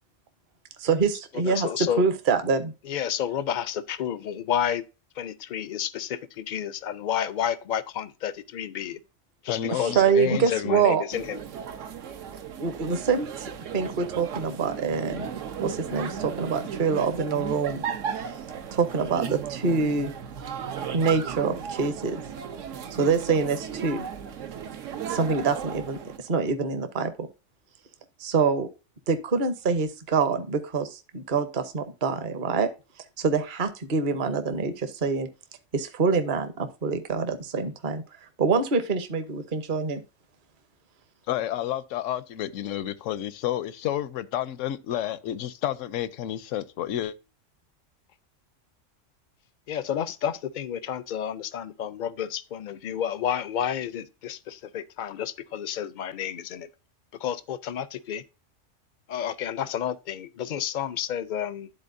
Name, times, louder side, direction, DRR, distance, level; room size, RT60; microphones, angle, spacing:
voice 1, 0.8-2.7 9.7-11.0 12.6-15.3 15.6-17.8 18.7-20.1 20.9-22.2 23.0-24.1 25.1-27.3 28.2-28.7 29.1-32.7 33.2-35.3 35.7-38.0 38.4-40.0, right 5 dB, 45° right, 0.9 m, -25 dB
voice 2, 1.3-2.0 2.8-4.8 5.2-9.0 9.4-10.0 10.3-11.4 49.7-56.7 57.2-58.2 59.1-61.7, left 9 dB, 65° left, 0.5 m, -30 dB
voice 3, 9.5-10.8 41.3-47.1, left 12 dB, 85° left, 1.0 m, -30 dB
sound 1, 11.1-26.2, right 7 dB, 75° right, 1.1 m, -35 dB
12.0 x 4.0 x 2.6 m
omnidirectional pair, 1.3 m